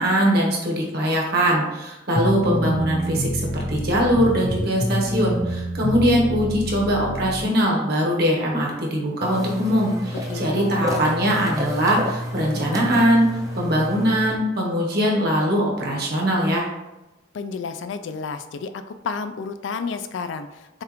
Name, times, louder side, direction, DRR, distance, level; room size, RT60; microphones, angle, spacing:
voice 1, 0.0-13.3 13.5-16.7, equal, 55° right, -2 dB, 1.2 m, -21 dB
sound 1, 2.1-7.5, right 1 dB, 45° left, 1.0 m, -27 dB
sound 2, 9.2-14.4, equal, 20° right, 0.5 m, -30 dB
voice 2, 10.3-11.1 17.3-20.8, left 5 dB, 65° left, 10 dB, 0.3 m, -31 dB
6.4 x 2.5 x 3.0 m, 1.0 s
head